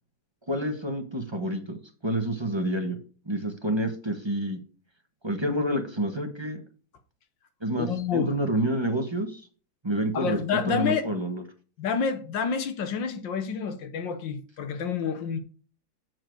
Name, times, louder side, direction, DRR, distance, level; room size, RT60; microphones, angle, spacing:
voice 1, 0.5-3.0 3.2-4.6 5.2-6.6 7.6-9.4 9.8-11.4, right 1 dB, 15° right, 1.2 m, -28 dB
voice 2, 7.8-8.3 10.1-11.1 11.8-15.4, left 6 dB, 70° left, 1.8 m, -28 dB
7.9 x 7.3 x 4.7 m
omnidirectional pair, 2.1 m